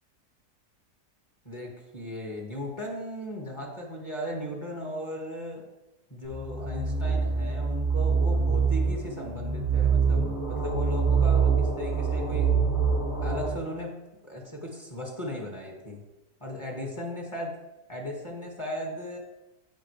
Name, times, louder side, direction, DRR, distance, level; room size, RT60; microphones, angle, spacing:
voice 1, 1.5-5.7 6.1-12.6 13.2-14.0 14.2-16.0 16.4-17.6 17.9-19.2, left 1 dB, 15° left, -2 dB, 1.8 m, -36 dB
sound 1, 6.2-13.5, right 5 dB, 90° left, 4.1 m, -25 dB
14.5 x 5.8 x 3.3 m, 1.0 s
omnidirectional pair, 1.8 m